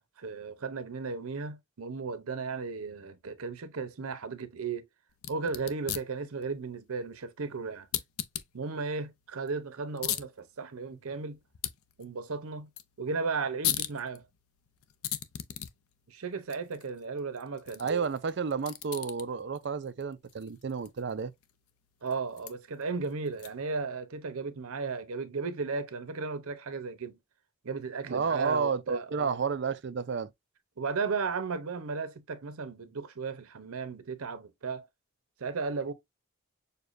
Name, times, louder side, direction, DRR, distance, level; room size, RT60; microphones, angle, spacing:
voice 1, 0.2-4.9 5.3-7.9 8.5-11.4 12.0-12.7 13.0-14.2 16.1-18.1 22.0-27.2 27.6-29.4 30.8-34.9 35.4-35.9, right 4 dB, 85° right, 0.7 m, -35 dB
sound 1, 5.1-23.8, left 11 dB, 85° left, 0.5 m, -41 dB
voice 2, 17.8-21.3 28.0-30.3, right 5 dB, 50° right, 0.4 m, -31 dB
6.6 x 2.2 x 2.5 m
head